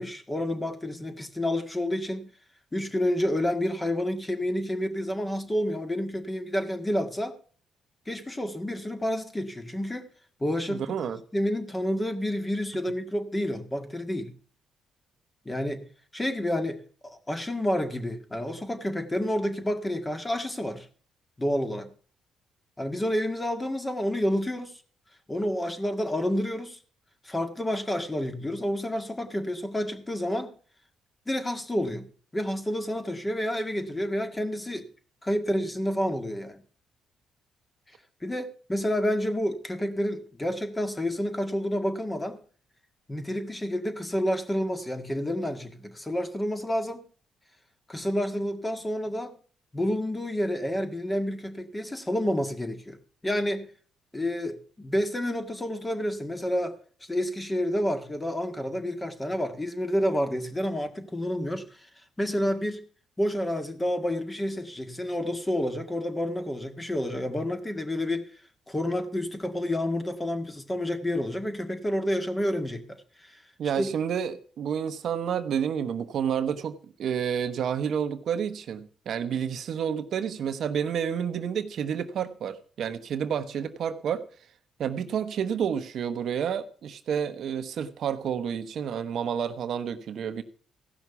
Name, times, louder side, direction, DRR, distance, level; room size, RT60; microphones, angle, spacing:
voice 1, 0.0-2.3 2.7-7.3 8.1-10.1 10.4-11.0 11.3-14.3 15.5-15.9 16.1-20.9 21.4-21.9 22.8-24.7 25.3-26.8 27.2-30.5 31.3-34.9 35.2-36.6 38.2-42.4 43.1-47.1 47.9-49.4 49.7-53.0 53.2-53.7 54.1-56.8 57.1-61.9 62.2-62.8 63.2-68.3 68.7-73.4 73.8-73.9, left 1 dB, 15° left, 1.8 m, -29 dB
voice 2, 10.7-11.2 73.6-84.2 84.8-90.4, right 8 dB, 65° right, 1.0 m, -30 dB
15.5 x 6.1 x 6.9 m
cardioid pair, 90°, 0 cm